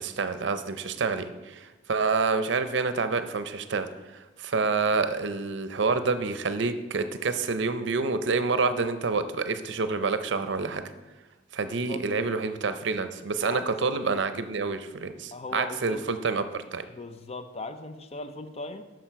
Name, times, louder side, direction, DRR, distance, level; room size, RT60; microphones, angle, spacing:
voice 1, 0.0-10.8 11.5-16.8, right 4 dB, 70° right, 10 dB, 0.6 m, -28 dB
voice 2, 11.6-12.1 13.4-14.1 15.3-16.0 16.9-18.8, left 3 dB, 35° left, 10 dB, 0.6 m, -39 dB
8.8 x 6.4 x 4.6 m, 1.1 s
head